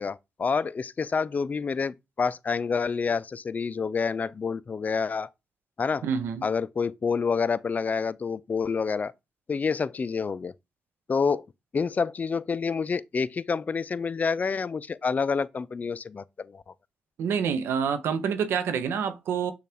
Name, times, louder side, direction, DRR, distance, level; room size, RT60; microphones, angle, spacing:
voice 1, 0.0-5.3 5.8-6.0 6.4-9.1 9.5-10.5 11.1-11.4 11.7-16.6, left 5 dB, 45° left, 0.3 m, -28 dB
voice 2, 6.0-6.5 17.2-19.5, right 7 dB, 85° right, 0.6 m, -27 dB
6.6 x 2.4 x 3.3 m
supercardioid pair, 50°, 4 cm